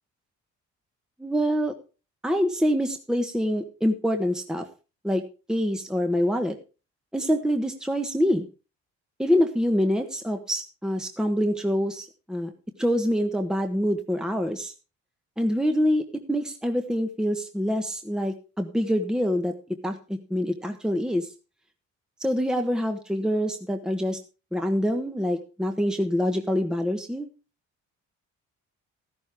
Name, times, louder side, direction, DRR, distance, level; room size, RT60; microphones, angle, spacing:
voice 1, 1.2-1.7 2.2-4.7 5.0-5.2 5.5-6.6 7.1-8.5 9.2-12.5 12.8-14.7 15.4-21.3 22.2-24.2 24.5-27.3, equal, ahead, 5 dB, 1.3 m, -25 dB
13.5 x 11.5 x 3.6 m, 0.32 s
cardioid pair, 90°, 30 cm